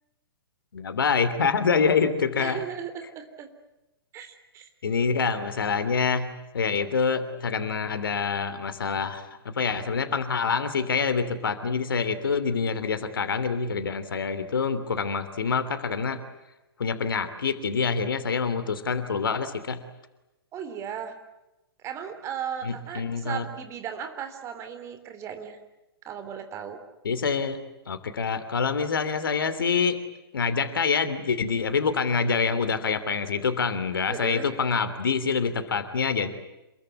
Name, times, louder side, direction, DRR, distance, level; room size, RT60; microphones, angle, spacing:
voice 1, 0.7-2.6 4.8-6.3 6.5-16.2 16.8-19.8 22.6-23.5 27.0-27.6 27.9-30.0 30.3-36.3, left 5 dB, 60° left, 11 dB, 3.0 m, -26 dB
voice 2, 2.4-3.5 4.1-4.7 20.5-21.2 21.8-25.6 26.0-26.8 34.1-34.5, right 8 dB, 20° right, 8 dB, 3.4 m, -36 dB
28.0 x 22.5 x 9.5 m, 0.97 s
figure-of-eight pair, 115°, 13 cm